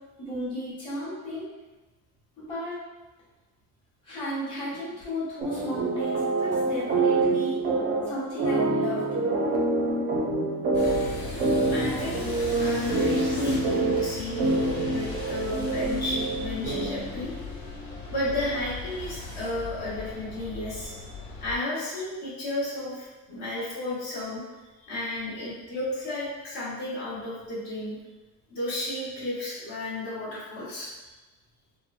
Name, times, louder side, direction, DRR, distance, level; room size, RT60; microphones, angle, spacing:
voice 1, 0.2-1.5 2.4-2.8 4.0-7.6 8.1-9.5, equal, 15° left, -10 dB, 0.9 m, -34 dB
sound 1, 5.4-17.2, right 2 dB, 30° right, 0.4 m, -26 dB
sound 2, 10.7-21.6, left 3 dB, 75° left, 1.4 m, -37 dB
voice 2, 11.7-17.3 18.1-24.4 24.8-28.0 28.5-30.9, left 1 dB, 55° left, -7 dB, 1.0 m, -33 dB
3.5 x 2.1 x 2.4 m, 1.2 s
cardioid pair, 175°, 32 cm